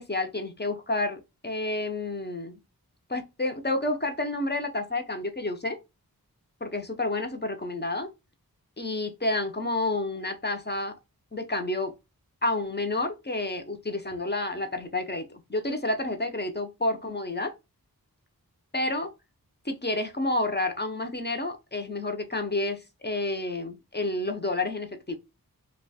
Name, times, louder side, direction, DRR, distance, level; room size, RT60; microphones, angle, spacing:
voice 1, 0.0-2.6 3.1-5.8 6.6-8.1 8.8-11.0 11.3-11.9 12.4-17.5 18.7-19.1 19.6-25.2, left 2 dB, 30° left, 0.7 m, -30 dB
2.8 x 2.3 x 4.1 m
wide cardioid pair, 60°, 37 cm